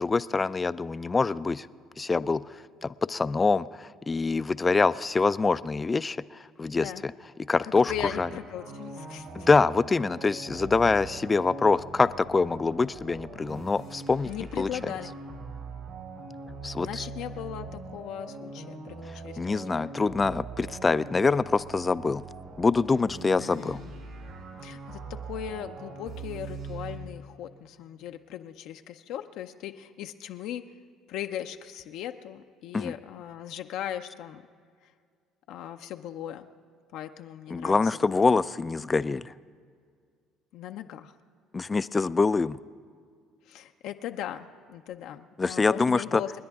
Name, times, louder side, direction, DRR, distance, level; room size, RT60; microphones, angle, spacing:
voice 1, 0.0-1.7 2.0-2.4 2.8-6.2 6.6-7.1 7.5-7.9 8.2-8.3 9.3-14.3 14.6-14.7 16.6-17.1 19.4-22.2 22.6-23.8 32.7-32.9 37.5-39.3 41.5-42.6 45.4-46.2, left 4 dB, 25° left, 16 dB, 0.4 m, -25 dB
voice 2, 7.6-9.5 14.3-15.2 16.8-19.8 23.4-23.9 24.6-30.7 31.1-34.4 34.8-34.9 35.5-36.5 36.9-37.8 40.5-41.1 43.5-46.3, left 11 dB, 75° left, 6 dB, 0.6 m, -38 dB
sound 1, 7.9-27.0, right 4 dB, 65° right, 3.3 m, -42 dB
28.5 x 10.0 x 3.6 m, 2.1 s
supercardioid pair, 90°, 0 cm